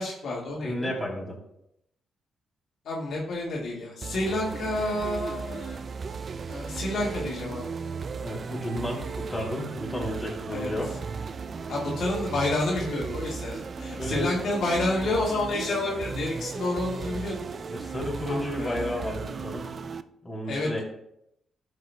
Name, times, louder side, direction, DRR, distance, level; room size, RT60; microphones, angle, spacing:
voice 1, 0.0-0.9 2.8-5.8 6.5-7.7 10.5-10.7 11.7-17.4 18.3-18.9 20.5-20.8, left 2 dB, 70° left, -4 dB, 1.9 m, -29 dB
voice 2, 0.6-1.4 8.2-10.9 14.0-14.3 17.7-19.7 20.2-20.8, left 1 dB, 15° left, -3 dB, 3.2 m, -32 dB
sound 1, 4.0-20.0, right 5 dB, 50° right, 0.3 m, -36 dB
11.0 x 6.4 x 2.3 m, 0.77 s
cardioid pair, 70°, 0 cm